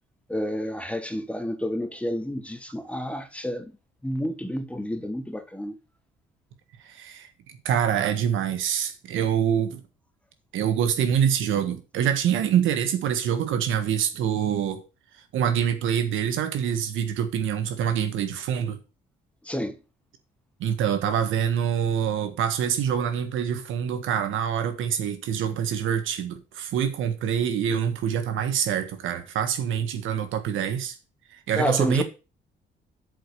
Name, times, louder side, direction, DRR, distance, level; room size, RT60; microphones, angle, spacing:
voice 1, 0.3-3.7 4.0-5.8 19.4-19.8 31.5-32.0, equal, 5° left, 1.4 m, -30 dB
voice 2, 6.8-7.3 7.6-9.8 10.5-14.8 15.3-18.8 20.6-30.9 31.3-32.0, right 8 dB, 85° right, 1.5 m, -25 dB
7.7 x 5.1 x 6.8 m
cardioid pair, 90°, 20 cm